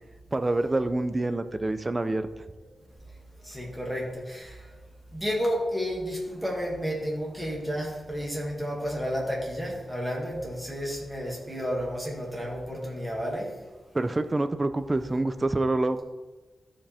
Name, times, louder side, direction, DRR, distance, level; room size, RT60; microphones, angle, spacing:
voice 1, 0.3-2.3 13.9-16.0, right 2 dB, 25° right, 10 dB, 0.5 m, -26 dB
voice 2, 3.5-4.5 5.1-13.4, equal, ahead, -4 dB, 2.3 m, -31 dB
13.5 x 5.1 x 3.5 m, 1.2 s
wide cardioid pair, 110°, 0 cm